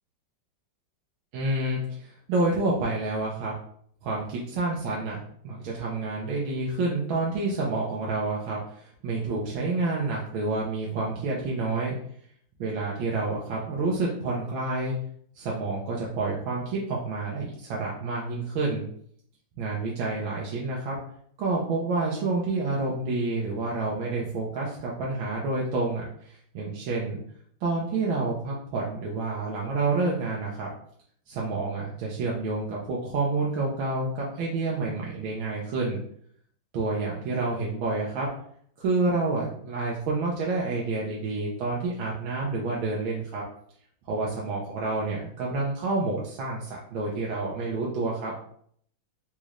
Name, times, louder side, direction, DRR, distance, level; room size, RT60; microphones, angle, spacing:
voice 1, 1.3-3.5 4.0-11.9 12.6-15.0 15.4-18.8 19.6-21.0 21.4-27.2 27.6-30.7 31.3-36.0 36.7-38.3 38.8-43.4 44.1-48.3, right 3 dB, 80° right, -4 dB, 1.5 m, -29 dB
4.0 x 3.1 x 2.4 m, 0.64 s
omnidirectional pair, 2.1 m